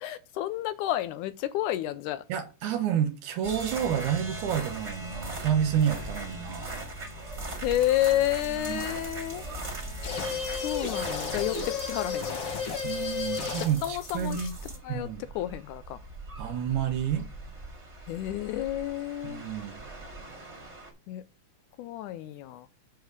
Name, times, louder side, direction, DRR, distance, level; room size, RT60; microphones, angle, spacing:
voice 1, 0.0-2.2 7.6-9.4 10.5-12.5 13.8-14.5 14.8-15.1 15.4-16.0 18.1-19.4 21.1-21.2 21.8-22.7, left 13 dB, 80° left, 1.8 m, -30 dB
voice 2, 2.3-6.7 8.6-8.9 12.8-14.5 14.9-15.2 16.4-17.3 19.2-19.8, right 9 dB, 75° right, 2.1 m, -29 dB
sound 1, 3.4-20.9, right 2 dB, 25° right, 1.7 m, -40 dB
sound 2, 10.0-13.9, left 6 dB, 50° left, 2.2 m, -32 dB
8.1 x 3.4 x 6.5 m
omnidirectional pair, 3.8 m